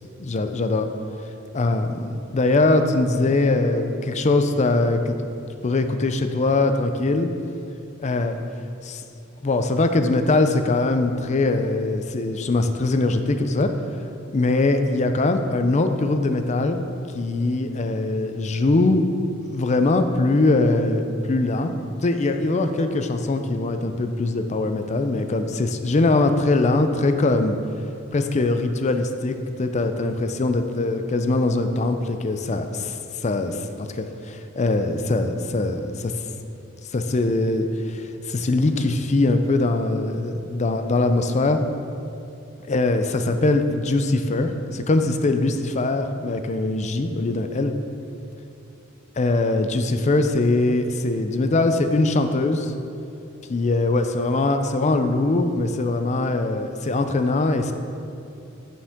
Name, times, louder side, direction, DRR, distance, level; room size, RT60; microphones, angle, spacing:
voice 1, 0.2-0.9 1.5-5.2 5.6-7.3 8.0-8.4 8.8-9.0 9.4-13.7 14.3-16.8 17.1-19.1 19.5-21.0 21.3-21.7 22.0-27.6 28.1-33.0 33.2-36.1 36.9-41.6 42.7-47.7 49.2-52.7 53.5-57.7, left 2 dB, 35° left, 7 dB, 0.4 m, -22 dB
8.5 x 7.1 x 3.6 m, 2.6 s
head